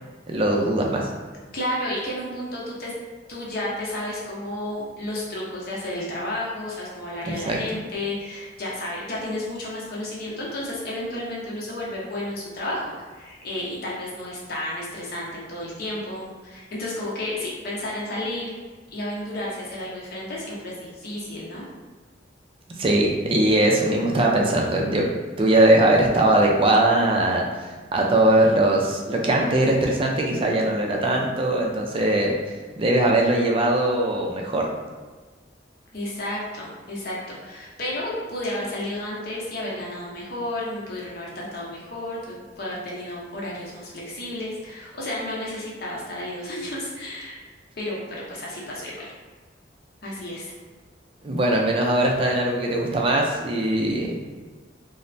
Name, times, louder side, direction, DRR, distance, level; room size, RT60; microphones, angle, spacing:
voice 1, 0.3-1.1 7.5-7.6 22.8-25.1 25.4-32.3 32.8-34.7 51.2-54.2, right 1 dB, 30° right, 0 dB, 0.4 m, -20 dB
voice 2, 1.5-2.9 3.3-18.5 18.9-21.6 35.9-47.4 47.7-49.1 50.0-50.5, left 1 dB, 55° left, -5 dB, 0.8 m, -32 dB
3.1 x 2.1 x 2.5 m, 1.4 s
head